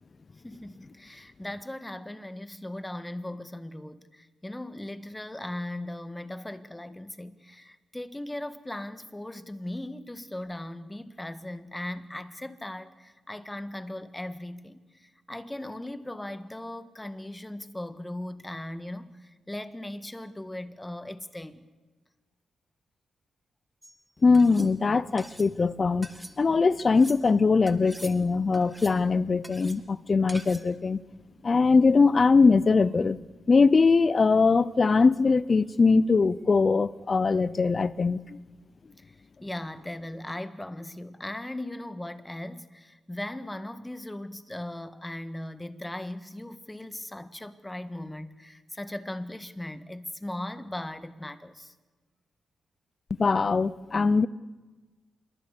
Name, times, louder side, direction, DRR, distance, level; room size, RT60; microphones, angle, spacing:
voice 1, 0.4-21.6 39.0-51.7, left 1 dB, 10° left, 1.6 m, -38 dB
sound 1, 23.8-24.0 24.3-24.7 25.2-25.5 26.0-26.4 26.8-27.2 27.7-28.2 28.5-29.0 29.4-29.8 30.3-30.7, right 1 dB, 10° right, 1.9 m, -45 dB
voice 2, 24.2-26.1 26.4-31.0 31.4-33.2 33.5-38.4 53.1-54.3, left 4 dB, 40° left, 0.7 m, -21 dB
26.5 x 22.0 x 6.9 m
cardioid pair, 70°, 0 cm